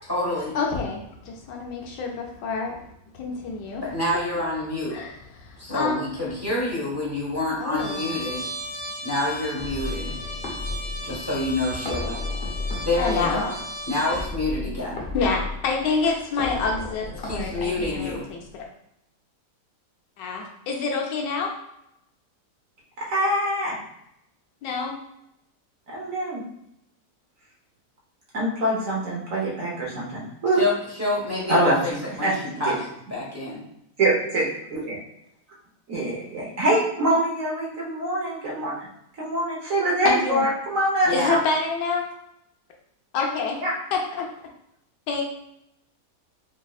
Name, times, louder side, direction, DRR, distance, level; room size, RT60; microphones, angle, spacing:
voice 1, 0.0-0.6 3.8-5.0 5.6-8.5 9.0-10.2 11.0-12.2 12.8-13.5 13.9-15.0 17.2-18.3 30.6-31.9 32.2-32.7 33.1-33.6 41.0-41.4, left 2 dB, 10° right, -5 dB, 1.0 m, -27 dB
voice 2, 0.5-3.9 4.9-6.0 7.6-8.2 13.0-13.4 15.1-18.6 20.2-21.5 24.6-25.0 40.0-40.5 41.1-42.1 43.1-43.6 45.1-45.2, left 4 dB, 85° left, 0 dB, 1.4 m, -27 dB
Trumpet, 7.8-14.3, equal, 80° right, 2.0 m, -36 dB
sound 1, 9.6-18.6, left 2 dB, 40° left, 0.9 m, -34 dB
voice 3, 23.0-23.8 25.9-26.4 28.3-30.6 31.5-32.3 32.6-32.7 34.0-35.0 35.9-38.7 39.2-41.4 43.6-43.7, right 1 dB, 55° right, -4 dB, 1.3 m, -24 dB
5.1 x 2.7 x 2.4 m, 0.79 s
omnidirectional pair, 1.9 m